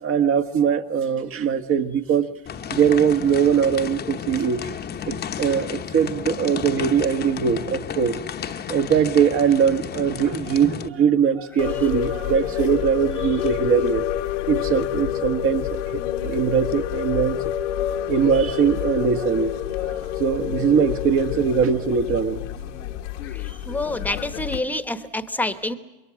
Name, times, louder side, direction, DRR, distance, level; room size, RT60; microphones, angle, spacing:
voice 1, 0.0-2.3 2.7-4.6 5.0-8.2 8.7-14.1 14.5-17.4 18.1-19.5 19.8-19.9 20.2-22.4, right 7 dB, 35° right, 1.5 m, -21 dB
sound 1, 2.5-10.9, left 8 dB, 25° left, 1.0 m, -32 dB
sound 2, 11.6-24.6, left 12 dB, 90° left, 1.6 m, -28 dB
voice 2, 23.7-25.8, left 2 dB, 5° left, 1.2 m, -27 dB
26.0 x 22.5 x 7.5 m
supercardioid pair, 115°, 36 cm